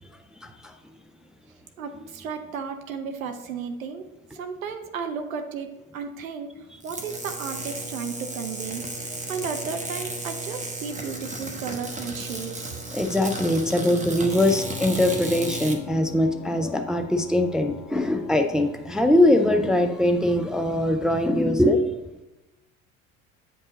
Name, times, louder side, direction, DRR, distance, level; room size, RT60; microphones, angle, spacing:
voice 1, 0.4-0.8 9.1-9.2 12.9-21.9, left 1 dB, ahead, 5 dB, 0.4 m, -22 dB
voice 2, 1.8-8.8 9.3-12.8, right 6 dB, 75° right, 7 dB, 0.9 m, -34 dB
sound 1, 6.8-15.8, right 2 dB, 15° right, 1.0 m, -34 dB
Piano, 14.3-20.8, left 7 dB, 50° left, 1.1 m, -43 dB
7.8 x 5.4 x 4.0 m, 1.0 s
figure-of-eight pair, 65°, 41 cm